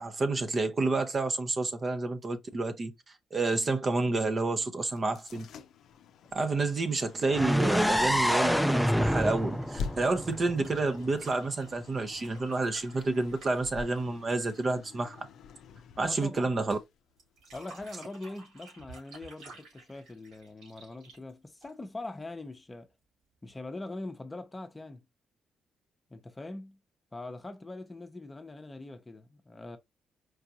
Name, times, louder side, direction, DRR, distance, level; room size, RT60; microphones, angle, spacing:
voice 1, 0.0-2.9 3.3-5.5 6.3-15.3 16.0-16.8, right 3 dB, 35° right, 0.6 m, -29 dB
sound 1, 4.9-17.8, left 6 dB, 75° left, 0.5 m, -47 dB
sound 2, 7.3-11.2, equal, ahead, 0.3 m, -27 dB
sound 3, 10.1-14.8 17.2-22.1 23.5-23.6, right 3 dB, 80° right, 2.8 m, -53 dB
voice 2, 16.0-16.5 17.5-22.9 23.4-25.0 26.1-26.8 27.1-29.8, left 2 dB, 20° left, 0.7 m, -42 dB
4.7 x 2.5 x 2.8 m
cardioid pair, 90°, 0 cm